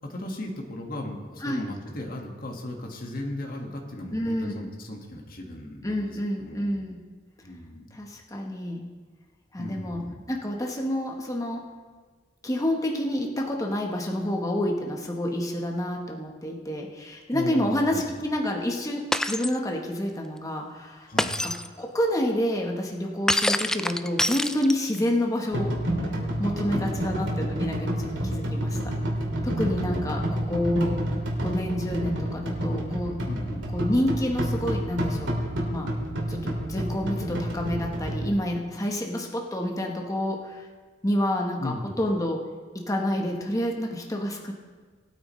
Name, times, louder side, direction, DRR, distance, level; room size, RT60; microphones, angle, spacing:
voice 1, 0.0-6.8 7.4-8.0 9.6-10.2 17.3-18.2 21.1-21.3 26.7-27.1 29.5-30.2 33.3-33.7 37.3-37.4 41.6-41.9, left 1 dB, 50° left, 1 dB, 1.7 m, -36 dB
voice 2, 4.1-4.7 5.8-7.0 7.9-8.8 9.5-11.6 12.4-21.1 21.4-25.8 26.4-28.9 29.4-31.0 31.4-33.2 33.7-35.3 35.7-35.9 36.3-40.6 41.0-42.4 42.7-44.5, left 1 dB, 20° left, 1 dB, 1.1 m, -28 dB
Shatter, 19.1-19.6 21.2-21.7 23.3-25.0, left 1 dB, 5° left, 0.3 m, -25 dB
sound 1, 25.5-38.3, right 1 dB, 85° right, 2.4 m, -29 dB
19.5 x 8.9 x 3.2 m, 1.4 s
head